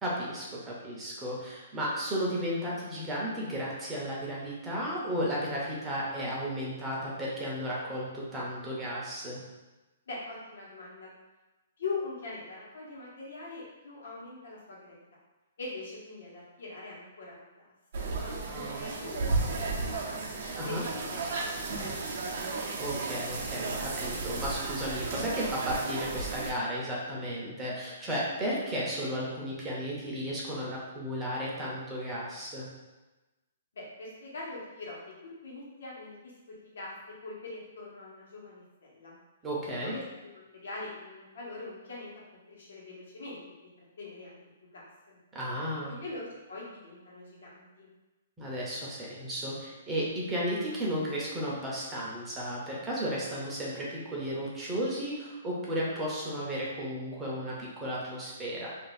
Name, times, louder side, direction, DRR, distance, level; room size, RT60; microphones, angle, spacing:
voice 1, 0.0-9.4 18.4-18.9 20.6-20.8 22.8-32.7 39.4-39.9 45.3-46.0 48.4-58.7, equal, 10° right, -5 dB, 0.6 m, -34 dB
voice 2, 10.1-11.1 11.8-15.0 15.6-18.1 18.7-20.2 20.4-22.5 33.7-36.3 36.7-36.9 37.2-39.2 39.8-42.1 42.5-43.6 44.0-44.4 44.7-44.8 45.1-45.2 45.9-46.2 46.5-47.9, left 3 dB, 75° left, -5 dB, 1.1 m, -42 dB
sound 1, 17.9-26.5, right 3 dB, 50° right, 0.5 m, -34 dB
2.5 x 2.3 x 4.0 m, 1.1 s
hypercardioid pair, 165°, 0 cm